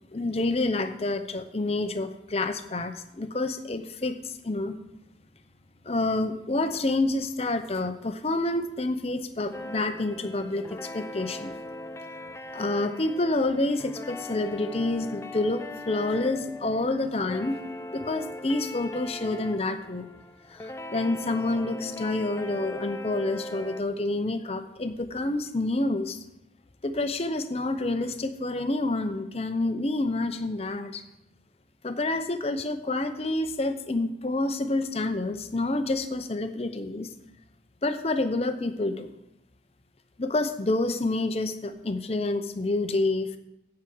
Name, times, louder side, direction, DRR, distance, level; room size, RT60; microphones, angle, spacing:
voice 1, 0.1-4.8 5.8-11.6 12.5-17.6 17.9-20.1 20.5-26.2 26.8-31.0 31.8-37.1 37.8-39.1 40.2-43.4, left 2 dB, 35° left, 9 dB, 0.7 m, -28 dB
sound 1, 9.5-23.8, left 1 dB, 15° left, 0.3 m, -40 dB
10.5 x 4.8 x 7.8 m, 0.89 s
head